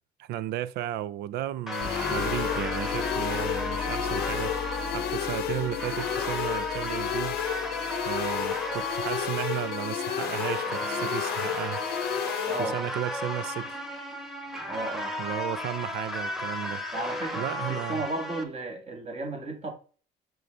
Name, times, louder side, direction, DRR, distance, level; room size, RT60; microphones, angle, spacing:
voice 1, 0.2-4.5 4.9-7.4 8.1-11.8 12.6-13.8 15.2-16.8 17.3-18.0, right 12 dB, 75° right, 0.5 m, -34 dB
sound 1, 1.7-12.7, left 11 dB, 70° left, 0.7 m, -32 dB
sound 2, 1.7-18.4, left 1 dB, ahead, 1.3 m, -34 dB
sound 3, 1.8-9.4, left 6 dB, 25° left, 0.5 m, -38 dB
voice 2, 12.5-12.8 14.7-15.2 16.9-19.7, right 2 dB, 40° right, 1.9 m, -34 dB
7.7 x 5.3 x 3.3 m
cardioid pair, 110°, 17 cm